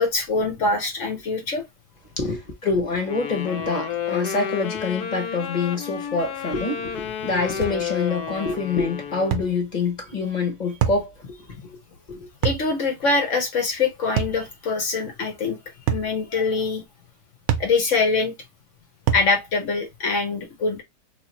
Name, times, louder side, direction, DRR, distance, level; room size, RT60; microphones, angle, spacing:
voice 1, 0.0-1.6 2.2-2.3 12.4-15.6 15.9-16.8 17.6-18.3 19.1-20.8, left 4 dB, 55° left, 1.1 m, -24 dB
voice 2, 2.2-11.3 11.6-11.8 12.1-12.3, left 4 dB, 30° left, 1.1 m, -26 dB
Wind instrument woodwind instrument, 3.0-9.5, left 7 dB, 70° left, 1.1 m, -31 dB
sound 1, 7.6-7.8 9.3-9.5 10.8-11.1 12.4-12.7 14.2-14.4 15.9-16.1 17.5-17.7 19.1-19.3, right 9 dB, 65° right, 0.9 m, -24 dB
3.0 x 2.8 x 2.8 m
omnidirectional pair, 1.9 m